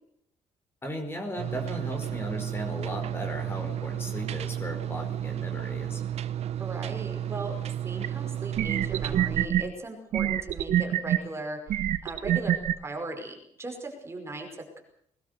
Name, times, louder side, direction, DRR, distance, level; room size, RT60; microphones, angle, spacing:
voice 1, 0.8-6.1, equal, 20° left, 4 dB, 4.9 m, -36 dB
sound 1, 1.4-9.5, right 11 dB, 55° right, 1.0 m, -33 dB
voice 2, 6.6-7.6 7.8-14.8, right 2 dB, 20° right, 4 dB, 5.1 m, -38 dB
sound 2, 8.0-8.1 8.6-9.6 10.1-11.2 11.7-12.7, right 11 dB, 75° right, 1.6 m, -25 dB
21.0 x 20.5 x 6.8 m, 0.69 s
cardioid pair, 170°, 13 cm